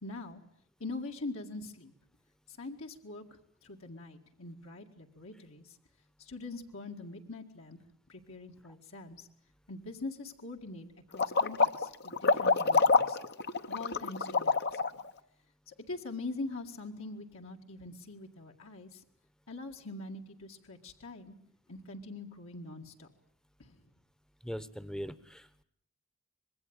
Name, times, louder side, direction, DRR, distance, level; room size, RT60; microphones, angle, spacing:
voice 1, 0.0-0.4 0.8-1.9 2.5-3.2 3.6-5.8 6.2-7.8 8.1-9.3 9.7-13.2 13.7-14.8 15.7-19.0 19.5-21.3 21.7-23.1 23.6-23.8, left 2 dB, 70° left, 2 dB, 2.0 m, -43 dB
sound 1, 11.1-15.0, left 4 dB, 50° left, 1.0 m, -26 dB
voice 2, 24.4-25.6, equal, 5° left, 14 dB, 1.0 m, -41 dB
25.5 x 21.5 x 8.8 m, 0.66 s
head